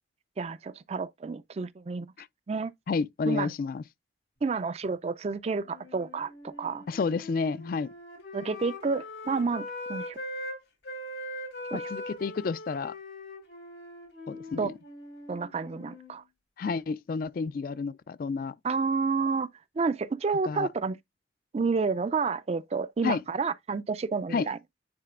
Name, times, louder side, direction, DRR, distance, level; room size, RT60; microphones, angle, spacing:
voice 1, 0.4-2.1 2.5-2.7 3.3-3.5 4.4-6.8 8.3-10.2 11.7-11.8 14.6-14.7 15.3-16.2 18.6-19.5 19.8-21.0 21.5-24.6, right 4 dB, 35° right, 0.4 m, -30 dB
voice 2, 2.9-3.8 6.9-7.9 11.7-12.9 14.3-14.7 16.6-18.5 20.4-20.7 23.0-23.2 24.3-24.5, left 4 dB, 50° left, 0.3 m, -30 dB
Wind instrument woodwind instrument, 5.6-10.6 10.8-16.1, left 1 dB, 85° left, 2.7 m, -41 dB
9.6 x 4.2 x 2.4 m
head